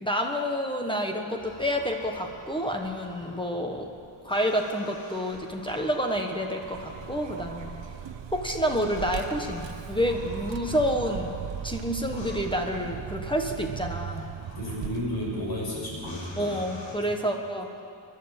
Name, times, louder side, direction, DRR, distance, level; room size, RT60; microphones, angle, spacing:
voice 1, 0.0-3.9 4.2-7.7 8.3-11.4 11.6-14.3 16.4-17.8, equal, 10° left, 2 dB, 1.3 m, -29 dB
sound 1, 1.4-16.9, equal, 85° left, 4.3 m, -48 dB
Vehicle, 6.5-16.9, right 9 dB, 75° right, 0.8 m, -38 dB
voice 2, 14.5-16.6, left 1 dB, 55° left, -4 dB, 6.6 m, -32 dB
27.5 x 11.5 x 8.9 m, 2.4 s
wide cardioid pair, 180°, 45 cm